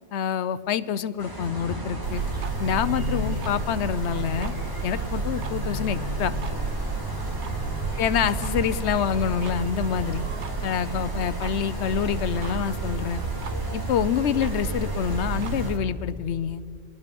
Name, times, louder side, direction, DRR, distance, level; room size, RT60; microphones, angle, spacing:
voice 1, 0.1-2.2 2.6-4.5 4.8-6.3 8.0-10.2 10.6-13.2 13.7-16.6, left 8 dB, 80° left, 14 dB, 1.0 m, -27 dB
sound 1, 1.2-15.7, equal, 20° right, 3.1 m, -34 dB
sound 2, 2.0-15.8, right 5 dB, 90° right, 1.2 m, -32 dB
25.5 x 20.0 x 5.2 m, 2.3 s
omnidirectional pair, 1.1 m